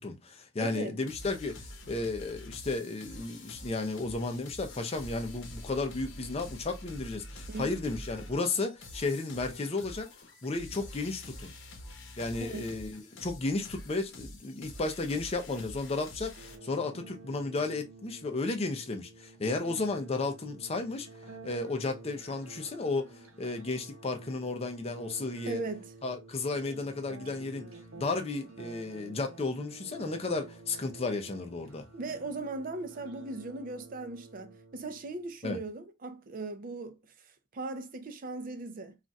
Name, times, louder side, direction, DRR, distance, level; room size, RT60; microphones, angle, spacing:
voice 1, 0.0-10.1 10.4-11.5 12.2-21.1 21.4-25.6 26.0-27.7 27.9-31.9 35.4-35.6, left 3 dB, 30° left, 0.5 m, -33 dB
voice 2, 0.6-1.0 7.5-7.8 12.2-12.7 25.4-25.9 31.9-39.0, right 3 dB, 40° right, 0.5 m, -39 dB
sound 1, 1.1-16.6, left 1 dB, 60° left, 0.8 m, -46 dB
sound 2, 16.3-35.3, right 3 dB, 85° right, 0.7 m, -50 dB
2.4 x 2.2 x 3.9 m
head